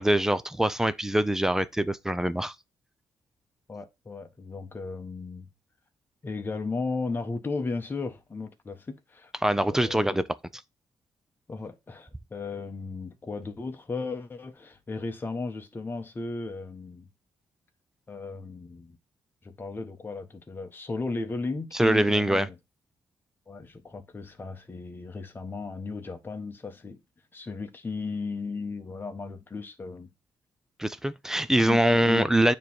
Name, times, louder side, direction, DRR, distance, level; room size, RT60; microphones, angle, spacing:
voice 1, 0.0-2.5 9.4-10.2 21.8-22.5 30.8-32.5, right 1 dB, 5° right, 0.4 m, -23 dB
voice 2, 3.7-5.5 6.2-9.3 9.6-10.3 11.5-17.1 18.1-19.0 19.4-22.6 23.5-27.0 27.3-30.1 31.5-32.3, left 3 dB, 25° left, 1.2 m, -35 dB
9.1 x 3.2 x 4.4 m
cardioid pair, 130°, 8 cm